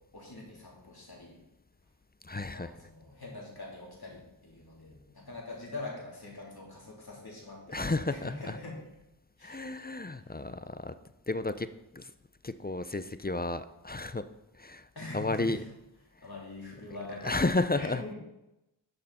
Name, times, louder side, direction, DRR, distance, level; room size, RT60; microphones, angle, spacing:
voice 1, 0.1-1.4 2.5-8.8 9.4-9.7 10.2-10.3 15.0-15.7 16.2-17.3 17.7-18.1, left 2 dB, 50° left, -4 dB, 3.6 m, -43 dB
voice 2, 2.2-2.8 7.7-8.6 9.4-10.9 11.3-11.7 11.9-12.1 12.4-14.3 14.5-14.9 15.1-15.6 17.2-18.0, left 2 dB, 20° left, 12 dB, 0.5 m, -32 dB
12.0 x 6.5 x 4.2 m, 0.91 s
wide cardioid pair, 60°, 46 cm